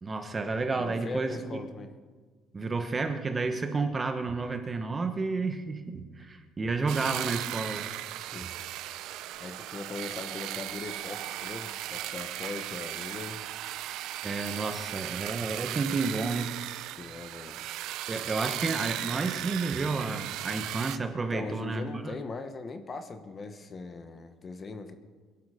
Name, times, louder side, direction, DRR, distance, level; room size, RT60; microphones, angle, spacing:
voice 1, 0.0-1.6 2.5-7.9 14.2-16.5 18.1-22.1, right 3 dB, 20° right, 7 dB, 1.0 m, -31 dB
voice 2, 0.8-1.9 6.2-6.3 8.2-8.5 8.8-9.1 9.4-13.4 16.8-17.6 21.3-25.0, left 3 dB, 25° left, 9 dB, 1.1 m, -40 dB
sound 1, 6.9-21.0, right 14 dB, 70° right, 0.6 m, -37 dB
22.5 x 11.5 x 5.0 m, 1.5 s
cardioid pair, 160°, 0 cm